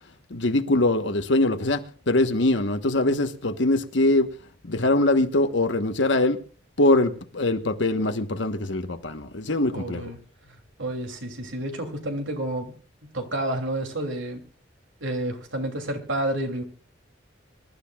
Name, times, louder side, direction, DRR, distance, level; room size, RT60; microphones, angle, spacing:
voice 1, 0.3-4.3 4.7-6.4 6.8-10.1, left 2 dB, 70° left, 1.3 m, -23 dB
voice 2, 9.7-10.2 10.8-12.7 13.1-14.4 15.0-16.6, right 1 dB, 90° right, 3.0 m, -30 dB
25.0 x 12.5 x 2.4 m
head